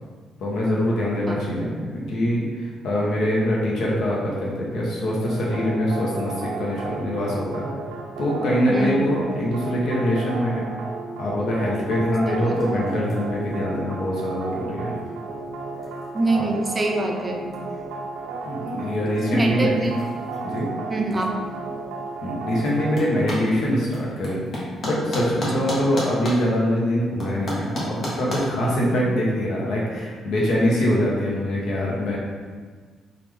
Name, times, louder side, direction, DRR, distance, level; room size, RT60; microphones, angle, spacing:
voice 1, 0.4-7.7 8.2-10.6 11.2-14.9 16.4-16.5 18.4-19.9 20.4-20.7 22.2-24.4 24.8-32.2, equal, 75° left, -4 dB, 0.8 m, -24 dB
voice 2, 1.3-1.6 8.7-9.1 12.3-12.9 16.1-17.4 19.3-20.0 20.9-21.3 21.7-21.8 28.8-29.0, right 2 dB, 25° right, 1 dB, 0.4 m, -25 dB
sound 1, 5.3-23.2, right 3 dB, 90° right, 0.3 m, -33 dB
sound 2, 11.9-28.4, equal, 50° left, 1.0 m, -37 dB
3.3 x 2.4 x 3.2 m, 1.5 s
cardioid pair, 90°, 0 cm